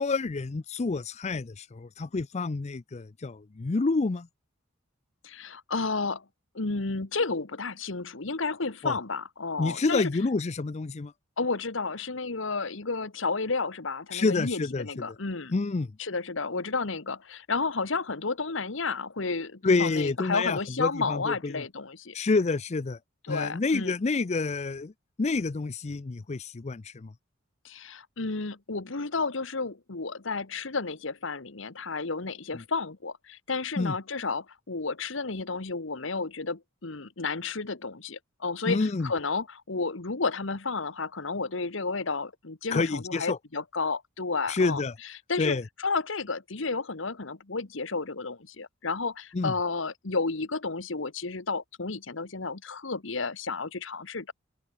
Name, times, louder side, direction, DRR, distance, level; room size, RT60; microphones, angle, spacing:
voice 1, 0.0-4.3 8.8-8.9 9.6-11.1 14.1-15.1 15.5-15.9 19.6-21.6 22.1-23.0 23.3-24.9 25.2-27.1 32.5-32.6 33.8-33.9 38.7-39.1 42.7-43.4 44.5-44.9 45.4-45.6 49.3-49.5, left 3 dB, 35° left, 0.5 m, -28 dB
voice 2, 5.2-6.2 6.5-10.1 11.4-15.5 16.0-22.2 23.3-24.0 27.6-44.8 45.3-54.3, left 4 dB, 65° left, 1.3 m, -32 dB
open air
head